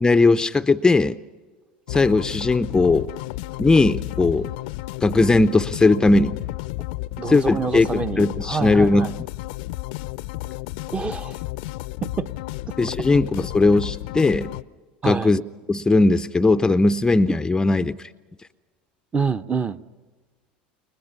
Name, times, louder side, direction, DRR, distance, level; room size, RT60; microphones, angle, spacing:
voice 1, 0.0-1.2 1.9-3.1 3.6-4.5 5.0-6.3 7.3-9.1 12.8-14.5 15.0-15.4 15.7-18.0, left 3 dB, 15° left, 12 dB, 0.6 m, -18 dB
sound 1, 1.9-14.6, left 18 dB, 70° left, 0.6 m, -32 dB
voice 2, 7.2-9.1 10.9-11.4 12.0-12.3 12.7-13.1 15.0-15.3 19.1-19.8, right 5 dB, 20° right, 9 dB, 1.0 m, -27 dB
29.0 x 22.5 x 5.6 m, 1.4 s
hypercardioid pair, 85°, 5 cm